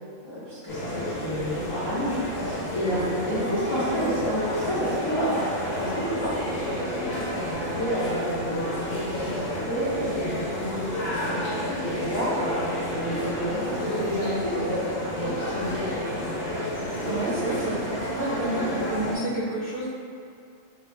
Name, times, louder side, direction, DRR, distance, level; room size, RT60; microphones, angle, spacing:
voice 1, 0.2-11.5 11.8-12.6 12.9-14.9 15.1-15.9, equal, 35° left, -12 dB, 0.4 m, -30 dB
sound 1, 0.7-19.2, equal, 55° left, 0.9 m, -30 dB
voice 2, 17.0-19.8, right 2 dB, 60° right, -8 dB, 0.7 m, -29 dB
2.8 x 2.4 x 3.3 m, 2.3 s
omnidirectional pair, 1.4 m